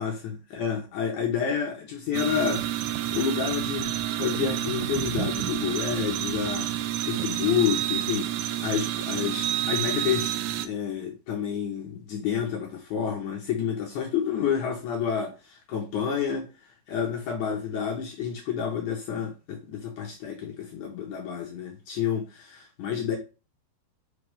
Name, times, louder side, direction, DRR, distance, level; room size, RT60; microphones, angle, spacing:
voice 1, 0.0-2.6 3.1-3.9 4.2-10.3 10.6-16.5 16.9-23.2, left 8 dB, 65° left, 2.0 m, -29 dB
sound 1, 2.1-10.7, right 12 dB, 85° right, 1.9 m, -29 dB
5.4 x 4.8 x 5.0 m
omnidirectional pair, 4.5 m